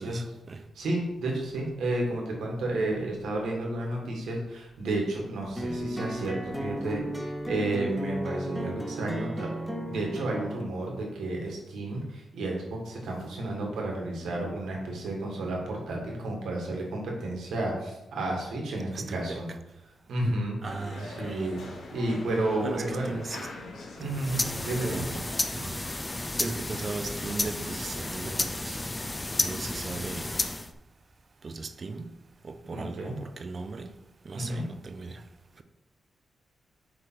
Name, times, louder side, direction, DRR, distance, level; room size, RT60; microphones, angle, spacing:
voice 1, 0.0-0.6 18.9-19.4 20.6-21.5 22.6-23.5 24.0-24.6 24.9-25.3 25.5-25.9 26.3-28.8 29.4-30.3 31.4-32.1 32.4-34.0 34.2-35.2, right 3 dB, 40° right, 0.6 m, -38 dB
voice 2, 0.8-9.5 9.9-19.5 20.1-20.6 21.0-21.6 21.9-23.2 24.0-25.1 32.7-33.2 34.3-34.7, right 2 dB, 90° right, 1.7 m, -31 dB
sound 1, 5.6-10.6, right 1 dB, ahead, 0.9 m, -34 dB
sound 2, 20.6-25.7, left 2 dB, 80° left, 1.2 m, -43 dB
sound 3, 24.0-30.7, left 2 dB, 20° left, 0.5 m, -32 dB
7.8 x 3.3 x 4.5 m
cardioid pair, 95°, 0 cm